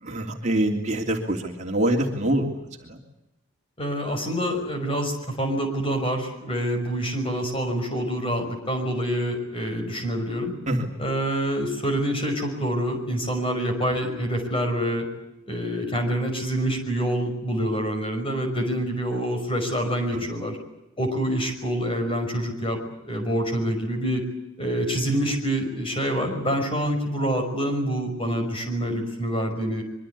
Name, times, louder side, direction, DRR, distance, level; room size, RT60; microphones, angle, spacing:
voice 1, 0.0-2.5 2.8-3.0 10.7-10.9 20.1-20.3, right 1 dB, 35° right, 1 dB, 2.9 m, -25 dB
voice 2, 3.8-10.5 11.0-15.1 15.5-20.6 21.0-24.2 24.6-29.8, equal, 25° left, 4 dB, 5.8 m, -26 dB
25.0 x 23.5 x 8.4 m, 0.93 s
head